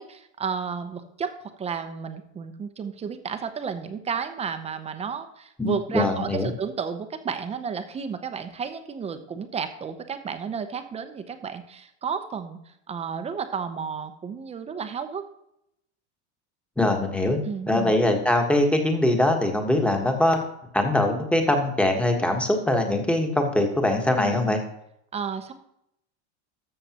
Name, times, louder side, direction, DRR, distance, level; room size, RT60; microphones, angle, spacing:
voice 1, 0.0-1.3 1.6-15.2 17.4-18.0 24.2-24.6 25.1-25.5, right 6 dB, 20° right, 9 dB, 0.7 m, -32 dB
voice 2, 5.6-6.5 16.8-17.4 17.7-20.4 20.7-24.6, left 1 dB, 5° left, 3 dB, 1.3 m, -22 dB
13.0 x 6.9 x 2.9 m, 0.77 s
supercardioid pair, 140°, 35 cm